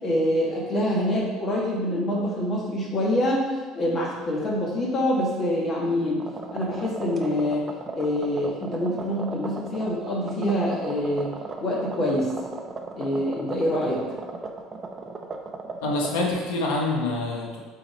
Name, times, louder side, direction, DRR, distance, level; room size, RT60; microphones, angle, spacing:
voice 1, 0.0-3.4 3.7-6.2 6.5-11.3 11.6-12.3 12.9-14.0, left 1 dB, 40° left, -4 dB, 1.6 m, -25 dB
sound 1, 6.2-16.3, right 3 dB, 30° right, 0.7 m, -36 dB
voice 2, 15.8-17.6, left 2 dB, 85° left, -1 dB, 1.4 m, -26 dB
7.4 x 3.9 x 4.3 m, 1.4 s
supercardioid pair, 100°, 0 cm